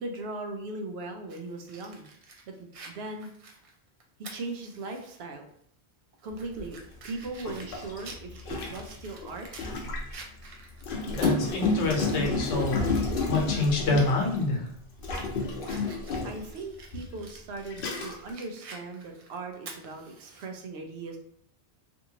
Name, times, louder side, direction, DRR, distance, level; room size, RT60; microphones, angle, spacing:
voice 1, 0.0-2.1 2.5-3.3 4.2-5.5 6.2-6.8 7.0-9.5 16.2-21.2, right 2 dB, 70° right, 4 dB, 0.8 m, -38 dB
Fire, 1.3-5.2 5.6-5.7 6.2-9.7 10.1-12.2 12.6-12.7 14.1-14.4 14.9-20.5, right 3 dB, 55° right, 0.4 m, -49 dB
Gurgling, 6.6-6.7 7.4-10.2 10.8-14.4 15.0-16.5 17.2-17.3 17.7-18.3, left 4 dB, 60° left, 0.7 m, -30 dB
voice 2, 11.1-12.9 13.3-14.7, left 3 dB, 80° left, 0 dB, 1.0 m, -27 dB
2.7 x 2.6 x 2.8 m, 0.67 s
omnidirectional pair, 1.1 m